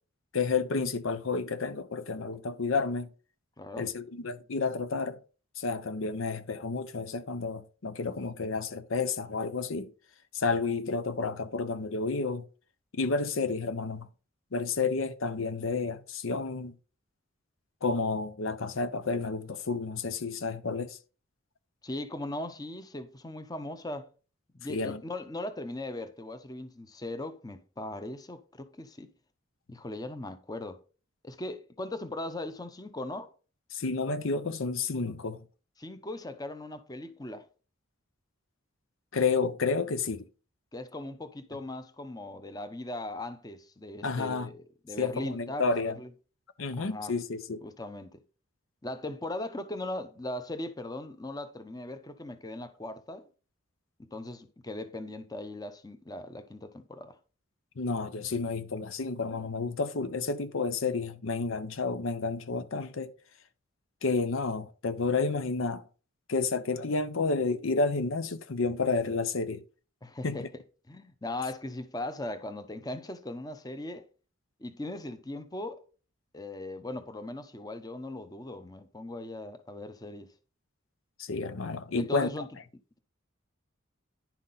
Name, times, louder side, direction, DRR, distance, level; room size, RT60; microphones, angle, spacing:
voice 1, 0.3-3.1 3.8-5.2 5.6-9.9 10.3-12.5 12.9-14.1 14.5-16.7 17.8-21.0 24.7-25.0 33.7-35.4 39.1-40.3 44.0-44.5 45.0-46.0 46.6-47.6 57.8-63.1 64.0-65.8 66.3-69.6 70.2-70.5 81.2-82.3, left 4 dB, 80° left, 0.7 m, -30 dB
voice 2, 3.6-3.9 21.8-24.1 24.5-29.1 29.7-30.8 31.2-33.3 35.8-37.5 40.7-46.1 46.8-47.1 47.6-48.2 48.8-53.3 54.0-57.2 70.0-70.4 70.9-74.0 74.6-75.8 76.3-80.3 81.9-82.5, left 1 dB, 20° left, 0.7 m, -39 dB
10.5 x 5.8 x 4.0 m
head